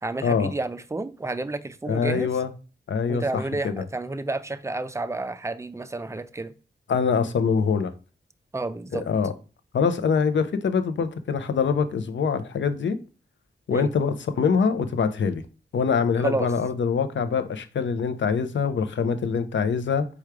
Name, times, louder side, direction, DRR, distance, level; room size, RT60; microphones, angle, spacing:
voice 1, 0.0-2.3 3.1-6.5 8.5-9.0 13.7-13.9 16.2-16.5, right 2 dB, 15° right, 0.4 m, -30 dB
voice 2, 1.9-2.5 2.9-3.2 3.6-3.8 6.9-7.9 8.9-9.3 9.7-13.0 13.7-15.4 15.7-20.1, left 6 dB, 75° left, 0.6 m, -24 dB
4.5 x 2.3 x 4.7 m
cardioid pair, 60°, 19 cm